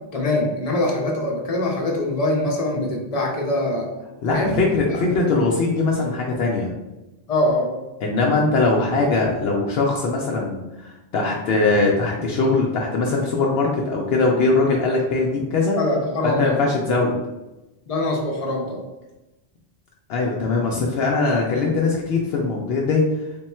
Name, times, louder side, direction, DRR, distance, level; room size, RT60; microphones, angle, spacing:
voice 1, 0.1-3.9 4.3-4.6 4.9-5.0 7.3-7.7 15.8-16.7 17.9-18.8, left 1 dB, 40° left, 0 dB, 0.7 m, -23 dB
voice 2, 4.2-6.7 8.0-15.8 16.2-17.1 20.1-23.0, left 3 dB, 70° left, -2 dB, 0.8 m, -21 dB
3.5 x 2.2 x 4.2 m, 1.0 s
omnidirectional pair, 1.1 m